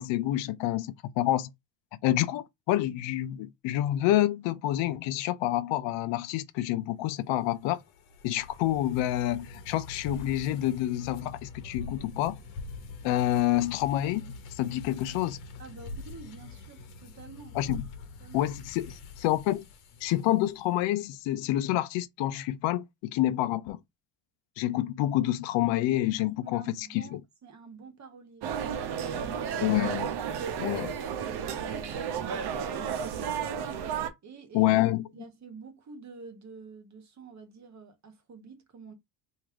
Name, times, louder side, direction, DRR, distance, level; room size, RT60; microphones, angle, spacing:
voice 1, 0.0-1.5 2.0-7.8 8.2-12.4 13.0-15.4 17.5-17.8 18.3-18.9 19.2-19.7 20.0-23.8 24.6-27.2 29.6-30.1 30.6-30.9 34.5-35.1, left 14 dB, 70° left, 0.7 m, -28 dB
sound 1, 7.3-20.7, left 3 dB, 90° left, 1.0 m, -44 dB
voice 2, 15.6-17.6 18.2-18.5 26.2-29.8 30.5-33.8 34.2-34.7 35.1-38.9, right 5 dB, 35° right, 1.2 m, -48 dB
sound 2, 28.4-34.1, right 7 dB, 55° right, 0.8 m, -32 dB
3.1 x 2.8 x 3.5 m
supercardioid pair, 95°, 46 cm